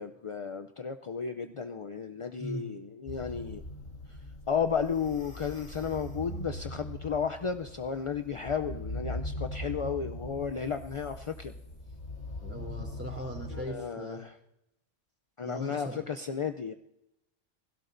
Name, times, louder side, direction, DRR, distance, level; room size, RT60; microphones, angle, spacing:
voice 1, 0.0-3.6 4.5-11.5 13.5-14.4 15.4-16.7, left 6 dB, 45° left, 7 dB, 0.4 m, -33 dB
sound 1, 3.1-13.6, left 1 dB, 80° left, 4.0 m, -41 dB
voice 2, 12.4-14.2 15.4-16.0, equal, 10° right, 0 dB, 3.3 m, -39 dB
28.5 x 16.5 x 2.6 m, 0.87 s
omnidirectional pair, 1.2 m